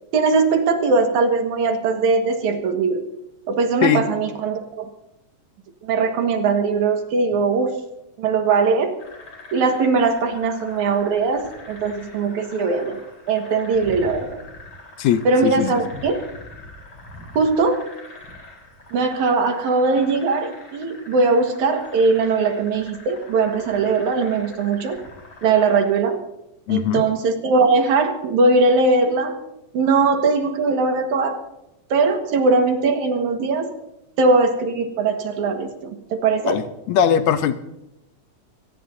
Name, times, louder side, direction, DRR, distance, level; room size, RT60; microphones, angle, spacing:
voice 1, 0.1-3.0 3.5-4.9 5.8-7.8 8.2-9.0 9.5-14.4 15.2-16.2 17.3-17.9 18.9-25.0 25.4-26.2 26.7-29.4 29.7-31.4 31.9-33.7 34.2-36.6, right 4 dB, 85° right, 5 dB, 3.0 m, -20 dB
sound 1, 9.0-25.9, left 2 dB, 50° left, 5.0 m, -43 dB
voice 2, 15.0-15.8 26.7-27.0 36.4-36.6 36.9-37.5, left 9 dB, 75° left, 11 dB, 2.1 m, -20 dB
25.0 x 18.0 x 2.7 m, 0.89 s
omnidirectional pair, 3.3 m